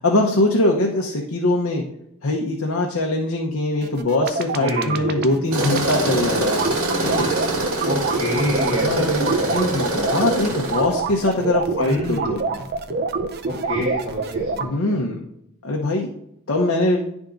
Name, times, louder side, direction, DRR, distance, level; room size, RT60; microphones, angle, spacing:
voice 1, 0.0-1.8 2.2-6.6 7.0-7.3 8.8-12.4 14.6-15.2 15.6-16.1 16.5-17.0, left 2 dB, 65° left, 0 dB, 0.8 m, -22 dB
sound 1, 3.8-14.7, right 4 dB, 45° right, 0.5 m, -26 dB
voice 2, 4.6-5.4 7.8-9.8 11.8-12.6 13.4-14.9, left 1 dB, 25° right, -7 dB, 2.2 m, -27 dB
Tools, 5.5-10.9, right 2 dB, 65° right, 1.8 m, -24 dB
10.5 x 3.6 x 3.8 m, 0.79 s
head